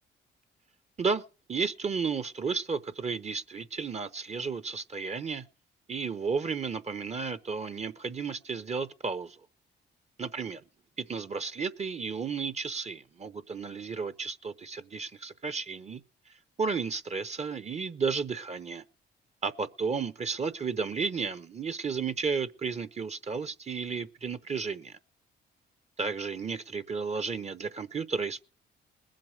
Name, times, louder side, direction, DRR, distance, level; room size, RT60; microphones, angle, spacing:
voice 1, 1.5-5.4 5.9-9.4 10.2-10.6 11.0-16.0 16.6-18.8 19.4-25.0 26.0-28.4, right 5 dB, 35° right, 0.9 m, -33 dB
20.5 x 7.7 x 5.0 m
cardioid pair, 90°, 20 cm